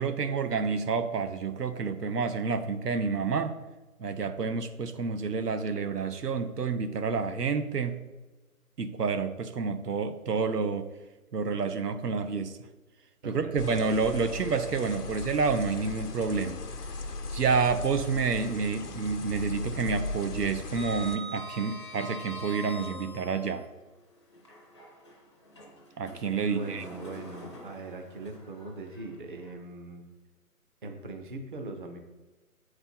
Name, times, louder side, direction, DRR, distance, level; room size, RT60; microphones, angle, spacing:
voice 1, 0.0-3.5 4.0-8.0 8.8-10.9 11.3-12.6 13.2-16.6 17.3-23.6 26.0-26.8, right 5 dB, 90° right, 9 dB, 0.8 m, -29 dB
voice 2, 13.2-13.6 26.4-30.0 30.8-32.0, right 2 dB, 35° right, 5 dB, 0.7 m, -40 dB
sound 1, 13.6-21.2, left 3 dB, 90° left, 0.8 m, -38 dB
Sliding door, 14.5-15.4 15.8-15.9 17.6-18.6 18.9-19.3 19.6-23.7 24.3-29.5, right 1 dB, 20° left, 0.5 m, -45 dB
7.7 x 4.3 x 4.4 m, 1.1 s
figure-of-eight pair, 150°, 46 cm